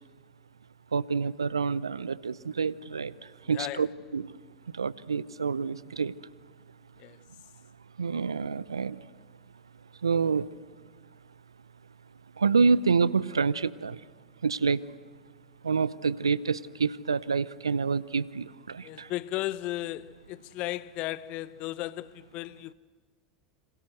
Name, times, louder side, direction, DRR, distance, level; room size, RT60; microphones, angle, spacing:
voice 1, 0.9-3.1 3.5-3.9 4.1-4.3 4.8-6.1 8.0-9.0 10.0-10.5 12.4-14.0 14.4-14.8 15.6-19.1, right 5 dB, 85° right, 0.8 m, -27 dB
voice 2, 3.4-3.9 7.0-7.2 18.8-22.7, left 16 dB, 50° left, 0.8 m, -35 dB
28.5 x 26.5 x 7.8 m
hypercardioid pair, 85°, 3 cm